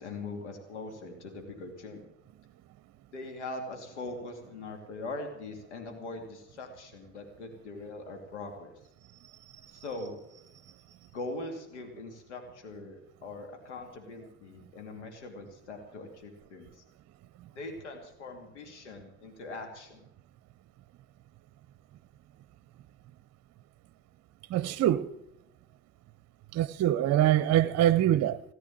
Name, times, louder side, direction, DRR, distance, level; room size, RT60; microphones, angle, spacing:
voice 1, 0.0-2.1 3.1-8.7 9.7-10.2 11.1-16.8 17.5-20.0, left 2 dB, 85° left, 2.6 m, -41 dB
voice 2, 9.2-9.9 10.9-11.1 24.5-25.1 26.5-28.4, right 12 dB, 50° right, 0.7 m, -25 dB
17.5 x 9.5 x 7.4 m
hypercardioid pair, 55°, 34 cm